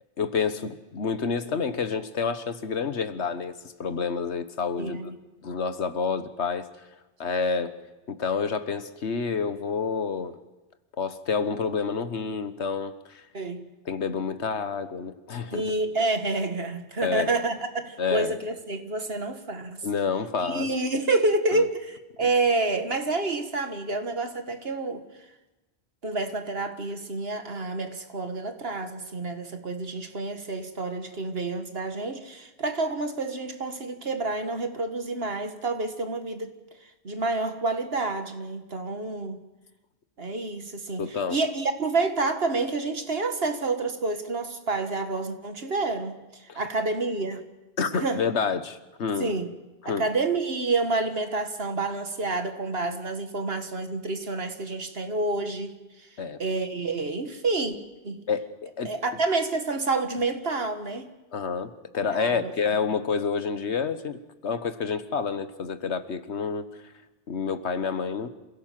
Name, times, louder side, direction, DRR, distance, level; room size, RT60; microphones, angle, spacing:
voice 1, 0.2-3.5 3.8-5.1 5.4-6.7 7.2-7.7 8.1-10.3 11.0-13.2 13.9-15.7 17.0-17.3 18.0-18.3 19.8-20.7 21.5-21.6 41.0-41.4 46.5-46.6 47.8-49.3 49.8-50.1 56.2-56.4 58.3-58.9 61.3-66.6 67.3-68.3, left 5 dB, 80° left, 1.5 m, -28 dB
voice 2, 4.8-5.2 13.3-13.7 15.5-19.9 20.4-25.0 26.0-36.5 37.0-39.4 40.2-47.4 47.9-48.2 49.2-49.5 49.9-55.8 56.4-57.8 58.0-58.2 58.8-61.1 62.1-62.9, right 3 dB, 60° right, 2.0 m, -28 dB
27.0 x 17.0 x 7.6 m
omnidirectional pair, 1.1 m